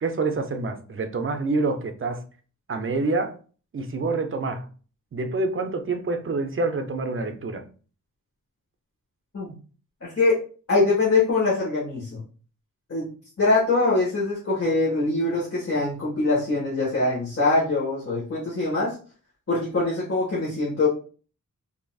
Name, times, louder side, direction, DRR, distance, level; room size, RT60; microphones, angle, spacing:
voice 1, 0.0-2.2 2.7-3.4 3.7-4.7 5.1-7.6, right 3 dB, 40° right, 0.5 m, -27 dB
voice 2, 10.0-10.4 10.7-12.2 12.9-13.1 13.4-18.9 19.5-20.9, left 3 dB, 45° left, 1.5 m, -23 dB
3.8 x 2.7 x 2.3 m
wide cardioid pair, 100°, 33 cm